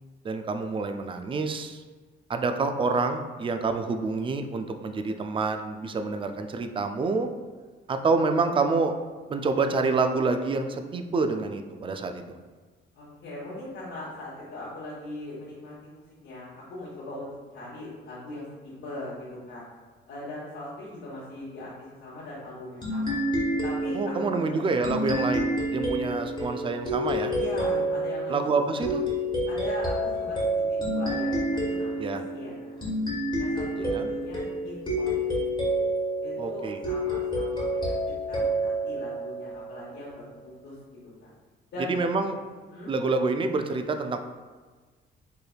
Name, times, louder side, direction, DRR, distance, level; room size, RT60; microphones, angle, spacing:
voice 1, 0.2-1.8 2.3-7.3 7.9-8.9 9.3-12.2 23.9-27.3 28.3-29.0 32.0-32.2 33.8-34.1 36.4-36.8 41.9-42.4 42.9-44.2, right 3 dB, 25° right, 7 dB, 0.3 m, -27 dB
voice 2, 12.9-17.3 17.5-19.7 20.1-23.2 23.6-24.6 27.3-28.4 28.7-29.0 29.5-32.9 33.4-35.6 36.2-38.0 38.3-40.8 41.0-41.3 41.7-42.0 42.7-42.9, left 1 dB, 80° left, -9 dB, 1.2 m, -40 dB
sound 1, 22.8-40.0, right 1 dB, 20° left, 1.3 m, -29 dB
4.6 x 3.3 x 2.3 m, 1.4 s
cardioid pair, 90°, 20 cm